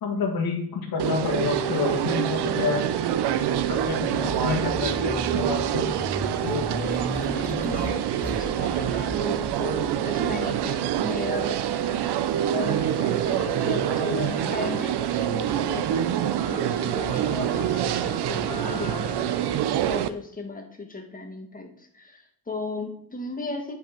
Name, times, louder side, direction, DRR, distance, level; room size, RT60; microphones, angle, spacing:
voice 1, 0.0-2.8 3.7-5.8 6.4-6.6, left 4 dB, 60° left, -5 dB, 1.7 m, -28 dB
sound 1, 1.0-20.1, right 10 dB, 75° right, 0.6 m, -26 dB
sound 2, 2.7-13.4 13.9-15.1, left 1 dB, 5° left, 0.3 m, -38 dB
voice 2, 6.7-11.6 12.5-23.8, left 3 dB, 20° left, 3 dB, 1.4 m, -36 dB
sound 3, 11.7-20.0, left 4 dB, 75° left, 1.8 m, -42 dB
8.8 x 5.4 x 4.4 m, 0.67 s
cardioid pair, 135°, 40 cm